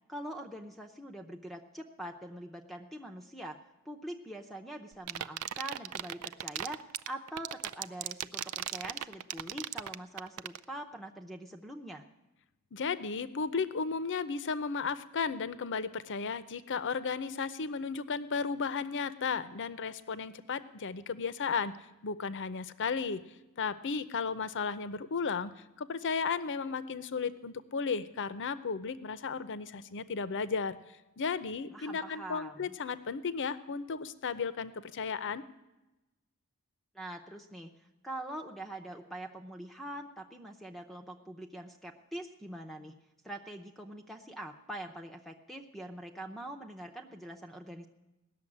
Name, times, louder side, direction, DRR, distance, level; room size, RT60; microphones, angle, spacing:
voice 1, 0.1-3.6 3.8-6.8 7.1-12.0 31.7-32.7 36.9-37.7 38.0-43.0 43.2-47.9, right 1 dB, ahead, 4 dB, 0.7 m, -43 dB
sound 1, 4.9-10.6, right 12 dB, 80° right, 0.5 m, -36 dB
voice 2, 12.7-21.8 22.0-23.2 23.6-30.8 31.2-35.4, left 5 dB, 55° left, 14 dB, 0.7 m, -34 dB
18.0 x 7.0 x 9.8 m, 1.0 s
head